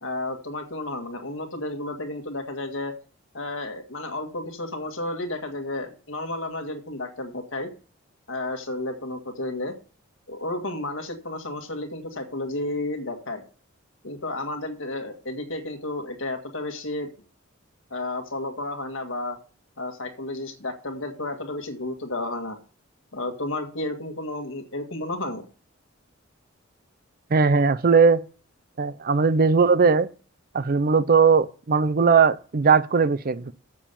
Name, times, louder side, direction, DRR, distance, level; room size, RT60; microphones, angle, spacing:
voice 1, 0.0-2.9 3.3-7.7 8.3-9.7 10.3-13.4 14.0-17.1 17.9-19.4 19.8-22.6 23.1-25.4, left 2 dB, 65° left, 1.9 m, -32 dB
voice 2, 27.3-28.2 28.8-30.1 30.5-33.5, right 5 dB, 45° right, 0.5 m, -19 dB
7.4 x 7.3 x 6.9 m
head